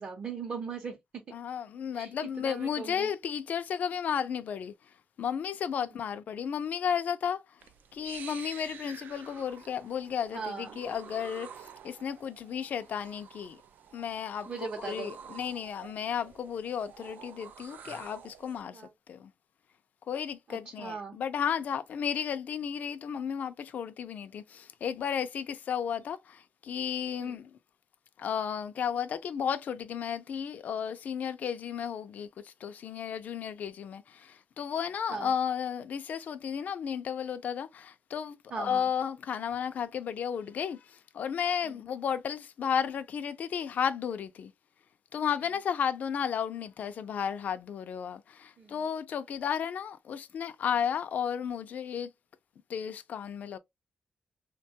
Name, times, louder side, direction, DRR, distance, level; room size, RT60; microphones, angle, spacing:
voice 1, 0.0-1.2 1.9-3.1 5.8-5.9 10.3-10.8 14.5-15.1 18.7-18.9 20.5-21.2 27.2-27.4 35.1-35.3 38.5-38.9 41.6-41.8 48.6-48.7, right 5 dB, 45° right, 0.6 m, -39 dB
voice 2, 1.3-4.7 5.2-7.4 7.9-13.6 13.9-18.8 19.1-19.3 20.1-27.5 28.2-44.5 45.1-52.1 52.7-53.6, left 8 dB, 60° left, 0.3 m, -33 dB
sound 1, 7.6-18.6, right 8 dB, 75° right, 0.3 m, -49 dB
3.2 x 2.2 x 2.7 m
wide cardioid pair, 160°, 3 cm